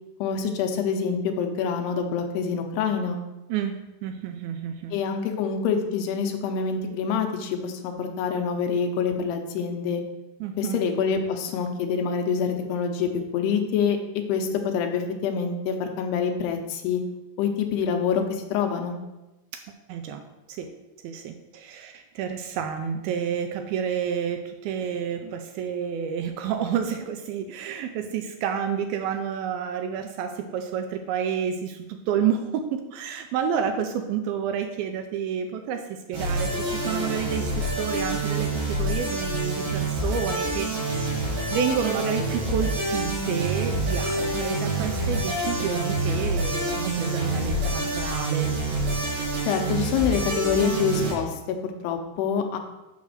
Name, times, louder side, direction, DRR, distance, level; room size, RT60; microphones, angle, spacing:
voice 1, 0.2-3.2 4.9-10.0 10.6-14.0 14.3-17.0 17.4-18.2 18.5-19.0 49.5-52.6, left 6 dB, 90° left, 5 dB, 2.9 m, -26 dB
voice 2, 3.5-4.9 10.4-10.8 19.5-19.6 19.9-20.2 20.5-20.7 21.0-48.6, right 7 dB, 80° right, 6 dB, 2.3 m, -30 dB
sound 1, 36.1-51.1, right 2 dB, 60° right, 3.8 m, -27 dB
6.7 x 5.1 x 6.4 m, 1.0 s
omnidirectional pair, 4.6 m